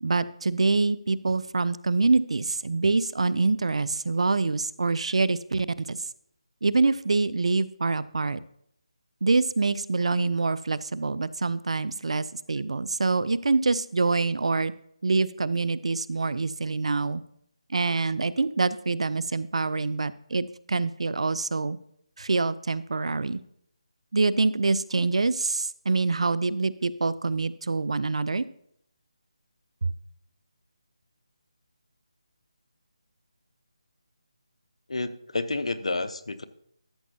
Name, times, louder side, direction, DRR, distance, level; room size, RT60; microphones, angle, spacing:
voice 1, 0.0-6.0 6.6-8.4 9.2-14.7 15.0-17.2 17.7-21.8 22.2-23.4 24.1-28.4 29.8-29.9, right 3 dB, 70° right, 18 dB, 0.4 m, -25 dB
voice 2, 34.9-36.4, left 2 dB, 75° left, 13 dB, 0.7 m, -30 dB
13.5 x 7.0 x 2.8 m, 0.70 s
figure-of-eight pair, 160°, 3 cm